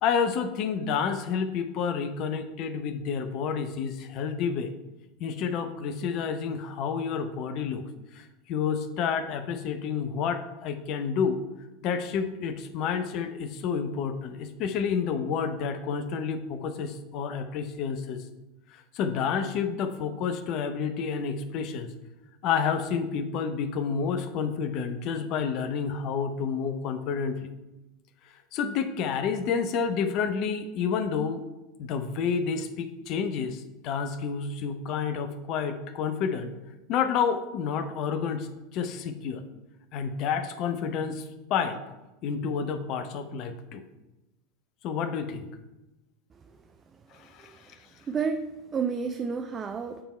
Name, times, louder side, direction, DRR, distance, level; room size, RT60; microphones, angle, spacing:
voice 1, 0.0-4.7 5.2-7.8 8.1-11.4 11.8-18.2 18.7-21.9 22.4-27.5 28.5-31.4 31.8-36.5 36.9-39.4 39.9-41.8 42.2-43.8 44.8-45.4 47.1-47.8, left 6 dB, 50° left, 9 dB, 0.7 m, -29 dB
voice 2, 48.1-50.0, right 5 dB, 30° right, 5 dB, 0.5 m, -30 dB
8.8 x 3.6 x 4.4 m, 1.0 s
hypercardioid pair, 85°, 0 cm